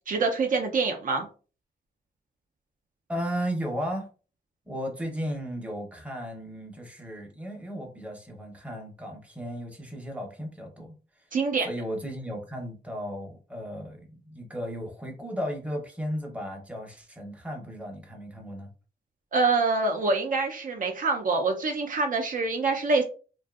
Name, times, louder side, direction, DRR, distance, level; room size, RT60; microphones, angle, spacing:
voice 1, 0.1-1.3 11.3-11.7 19.3-23.0, right 3 dB, 50° right, 3 dB, 0.4 m, -25 dB
voice 2, 3.1-4.1 4.7-11.3 11.6-18.7, equal, 5° right, 1 dB, 0.7 m, -35 dB
2.6 x 2.3 x 2.3 m, 0.37 s
wide cardioid pair, 130°, 18 cm